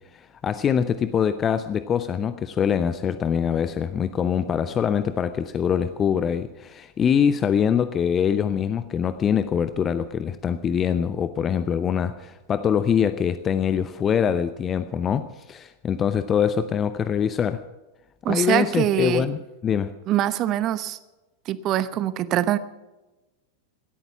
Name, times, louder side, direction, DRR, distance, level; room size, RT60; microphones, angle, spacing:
voice 1, 0.1-17.6 18.3-19.9, left 8 dB, 25° left, 0.7 m, -24 dB
voice 2, 18.2-19.3 20.1-21.0 21.5-22.6, right 12 dB, 35° right, 0.9 m, -23 dB
17.5 x 13.5 x 5.9 m
figure-of-eight pair, 90°, 0 cm